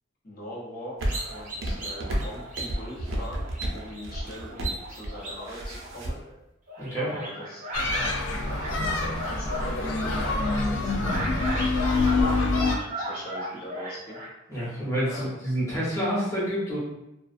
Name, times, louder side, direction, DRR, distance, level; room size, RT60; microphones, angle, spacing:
voice 1, 0.2-3.5 3.7-4.6 4.9-6.2 7.0-7.6 7.9-12.4 12.6-14.2 15.0-15.4, equal, 50° left, -5 dB, 0.8 m, -41 dB
sound 1, 1.0-6.1, right 1 dB, 85° right, 0.5 m, -32 dB
sound 2, 1.1-6.3 6.7-8.1 8.4-14.3, right 1 dB, 40° right, 0.6 m, -36 dB
voice 2, 6.8-7.1 14.5-16.8, equal, 15° left, -9 dB, 0.8 m, -28 dB
sound 3, 7.7-12.8, left 3 dB, 70° left, 0.4 m, -26 dB
2.3 x 2.2 x 2.5 m, 0.90 s
head